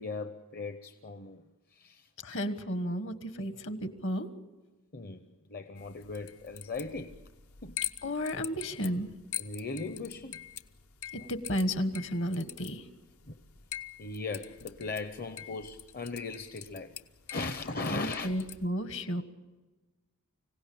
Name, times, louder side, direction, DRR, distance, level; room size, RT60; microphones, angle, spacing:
voice 1, 0.0-1.4 1.7-2.1 4.9-7.2 7.6-7.8 9.4-10.5 13.3-13.4 14.0-17.0 17.3-18.3, left 3 dB, 40° left, 0.8 m, -38 dB
voice 2, 2.2-4.3 8.0-9.1 11.1-12.9 17.9-19.2, equal, 60° left, 1.4 m, -33 dB
sound 1, 5.8-18.7, left 11 dB, 75° left, 0.9 m, -44 dB
25.5 x 17.0 x 8.7 m
head